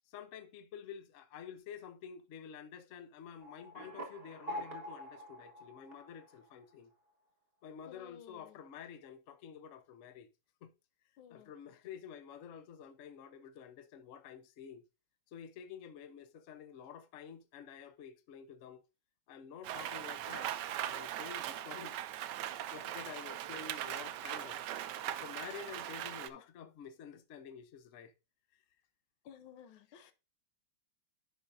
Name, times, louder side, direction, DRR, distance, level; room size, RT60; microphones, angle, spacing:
voice 1, 0.1-6.9 7.6-10.3 10.6-10.7 11.3-14.8 15.3-18.8 19.3-20.5 20.8-22.0 22.4-24.6 25.0-28.1 30.0-30.1, left 7 dB, 60° left, 0.8 m, -50 dB
sound 1, 3.4-6.7, equal, 30° right, 1.6 m, -46 dB
voice 2, 7.9-8.6 11.2-11.5 29.2-30.1, left 9 dB, 85° left, 1.6 m, -55 dB
Rain, 19.6-26.3, right 12 dB, 70° right, 1.1 m, -40 dB
10.5 x 5.6 x 2.6 m
omnidirectional pair, 2.2 m